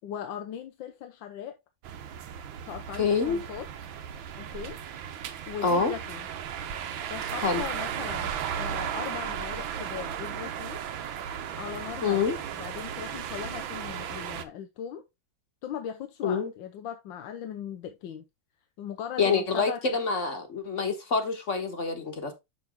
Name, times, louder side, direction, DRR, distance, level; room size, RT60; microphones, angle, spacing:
voice 1, 0.0-1.5 2.7-3.9 4.4-4.8 5.5-6.3 7.1-8.3 8.6-10.8 11.6-15.0 15.6-18.2 18.8-19.8, left 9 dB, 80° left, 1.5 m, -39 dB
sound 1, 1.8-14.5, right 8 dB, 90° right, 1.7 m, -35 dB
voice 2, 3.0-3.4 5.6-5.9 7.4-7.6 12.0-12.4 16.2-16.5 19.2-22.3, left 5 dB, 40° left, 1.6 m, -26 dB
7.1 x 6.1 x 3.5 m
omnidirectional pair, 2.1 m